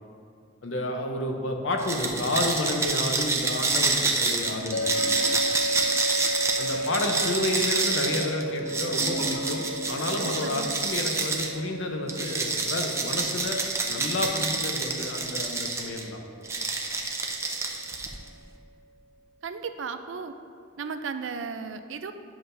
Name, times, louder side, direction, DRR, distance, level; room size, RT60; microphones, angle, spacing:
voice 1, 0.6-4.8 6.6-13.6 13.9-16.2, left 2 dB, 85° left, 3 dB, 0.8 m, -30 dB
sound 1, 1.8-11.5 12.1-16.0 16.4-18.3, right 3 dB, 15° right, 0.5 m, -28 dB
Gurgling / Toilet flush, 3.9-10.0 10.3-10.4, equal, 25° left, 1.8 m, -41 dB
sound 2, 4.7-17.8, equal, 65° left, 0.4 m, -35 dB
voice 2, 10.2-10.8 19.4-20.3 20.8-22.1, right 5 dB, 85° right, 9 dB, 0.4 m, -35 dB
10.0 x 5.9 x 2.7 m, 2.3 s
head